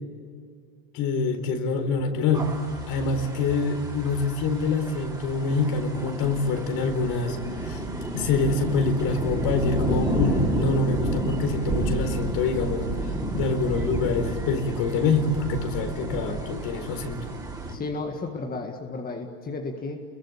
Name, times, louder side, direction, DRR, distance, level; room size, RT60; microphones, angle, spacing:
voice 1, 0.9-2.5 2.9-12.9 13.3-17.2, left 4 dB, 50° left, 7 dB, 4.3 m, -26 dB
sound 1, 2.3-17.7, right 1 dB, 10° right, 4.6 m, -30 dB
voice 2, 17.7-20.0, left 3 dB, 20° left, 3 dB, 1.9 m, -33 dB
28.5 x 22.5 x 8.7 m, 2.2 s
supercardioid pair, 115°, 44 cm